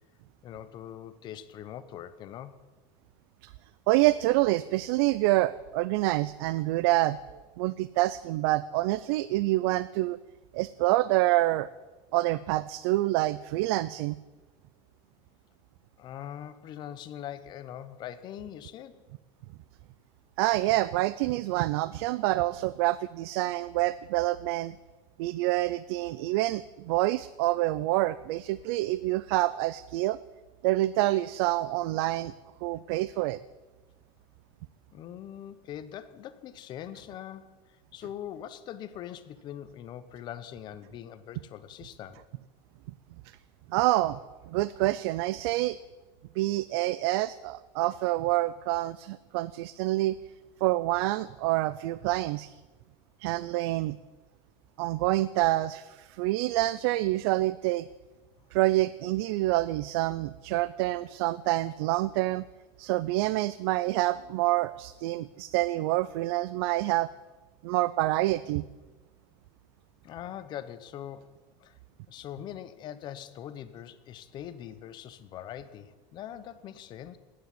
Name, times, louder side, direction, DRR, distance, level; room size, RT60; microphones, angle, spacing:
voice 1, 0.4-2.6 16.0-19.0 34.9-42.2 70.0-71.8 72.1-77.2, left 10 dB, 35° left, 13 dB, 0.8 m, -42 dB
voice 2, 3.9-7.2 7.6-10.2 10.5-11.7 12.1-14.2 20.4-24.8 25.2-30.2 30.6-32.3 32.6-33.4 43.7-44.2 44.5-45.8 46.4-50.2 50.6-52.6 53.2-54.0 54.8-57.9 58.5-62.5 62.8-67.1 67.6-68.6, right 17 dB, 80° right, 17 dB, 0.5 m, -27 dB
13.0 x 9.7 x 9.8 m, 1.3 s
cardioid pair, 170°, 13 cm